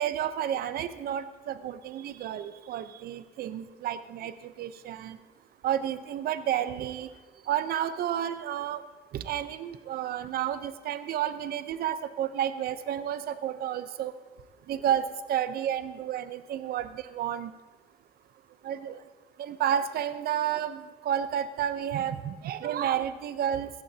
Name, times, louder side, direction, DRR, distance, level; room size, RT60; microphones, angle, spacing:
voice 1, 0.0-5.2 5.6-7.1 7.5-8.8 9.1-14.1 14.7-17.5 18.6-19.0 19.4-23.7, right 10 dB, 65° right, 12 dB, 0.8 m, -31 dB
17.0 x 14.5 x 2.9 m, 1.2 s
cardioid pair, 110°, 17 cm